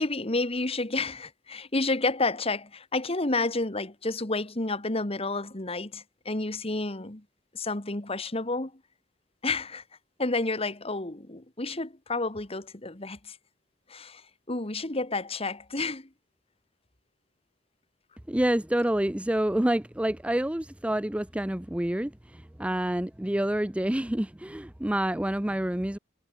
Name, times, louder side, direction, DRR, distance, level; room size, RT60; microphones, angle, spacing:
voice 1, 0.0-7.2 7.5-8.7 9.4-9.8 10.2-13.4 13.9-14.2 14.5-16.1, left 2 dB, 30° left, 1.9 m, -30 dB
voice 2, 18.3-26.0, right 1 dB, 5° right, 0.5 m, -28 dB
head